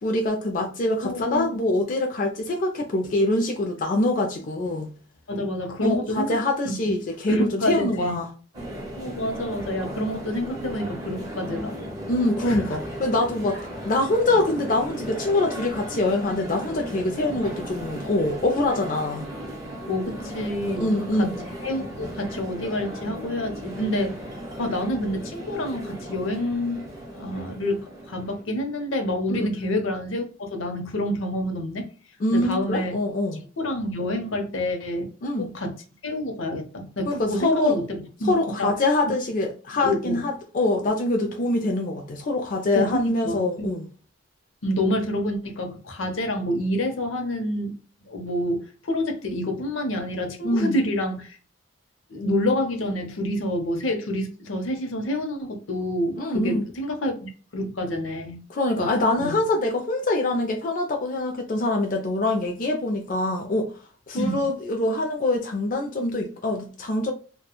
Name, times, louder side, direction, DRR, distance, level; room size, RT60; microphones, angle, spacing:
voice 1, 0.0-4.9 5.8-8.3 12.1-13.6 13.9-19.3 20.7-21.4 29.3-29.5 32.2-33.4 35.2-35.5 37.1-37.8 38.2-43.8 50.4-50.8 56.2-56.6 58.5-63.7 64.1-67.1, left 2 dB, 40° left, 0.4 m, -24 dB
voice 2, 1.0-1.5 5.3-6.3 6.6-7.0 7.3-8.2 9.0-11.7 12.5-12.8 19.9-21.3 21.6-24.2 24.6-31.9 32.3-33.0 33.6-35.1 35.4-35.8 36.0-38.7 39.8-40.2 42.7-43.7 44.6-47.8 48.1-51.4 52.1-58.4 58.8-58.9 59.2-59.5 64.2-64.4, left 1 dB, 80° left, 0.7 m, -28 dB
sound 1, 8.5-28.4, equal, 20° right, 1.1 m, -36 dB
2.9 x 2.2 x 2.2 m
head